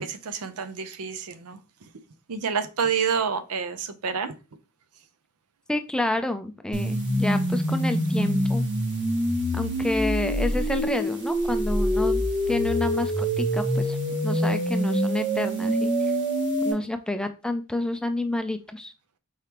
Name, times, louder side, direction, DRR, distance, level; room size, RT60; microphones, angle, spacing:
voice 1, 0.0-1.9 2.3-4.3, right 6 dB, 75° right, 10 dB, 0.6 m, -29 dB
voice 2, 5.7-8.6 9.5-14.0 14.2-16.1 16.6-18.9, left 1 dB, 5° left, 8 dB, 0.3 m, -29 dB
sound 1, 6.7-16.7, equal, 55° right, 1.4 m, -25 dB
4.7 x 3.5 x 2.9 m, 0.30 s
head